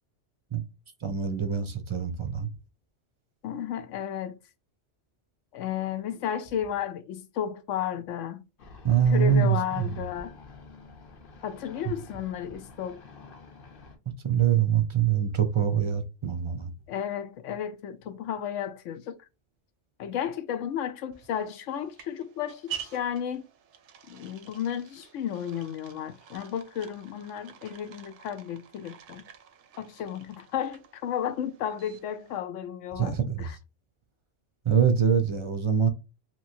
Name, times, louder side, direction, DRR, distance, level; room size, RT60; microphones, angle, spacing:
voice 1, 1.0-2.5 8.8-10.0 14.2-16.7 33.0-33.5 34.6-35.9, right 8 dB, 45° right, 0.4 m, -24 dB
voice 2, 3.4-4.4 5.5-8.4 9.1-10.4 11.4-13.0 16.9-19.2 20.0-23.5 24.1-29.2 29.8-33.6, left 9 dB, 85° left, 0.9 m, -33 dB
sound 1, 8.6-14.0, left 3 dB, 55° left, 0.8 m, -48 dB
sound 2, 21.1-32.4, right 9 dB, 75° right, 0.9 m, -47 dB
3.0 x 2.9 x 2.6 m
omnidirectional pair, 1.2 m